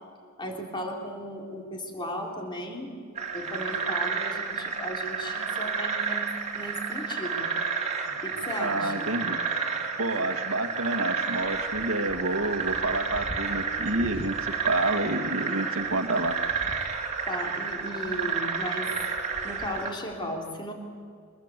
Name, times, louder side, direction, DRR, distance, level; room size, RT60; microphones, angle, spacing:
voice 1, 0.4-2.9 3.3-7.5 8.2-9.2 17.2-18.9 19.4-20.7, equal, 25° left, 2 dB, 3.4 m, -36 dB
sound 1, 3.2-19.9, right 5 dB, 35° right, 2.6 m, -31 dB
voice 2, 8.6-9.4 10.0-16.5, right 2 dB, 80° right, 8 dB, 1.9 m, -29 dB
24.5 x 21.5 x 8.2 m, 2.3 s
head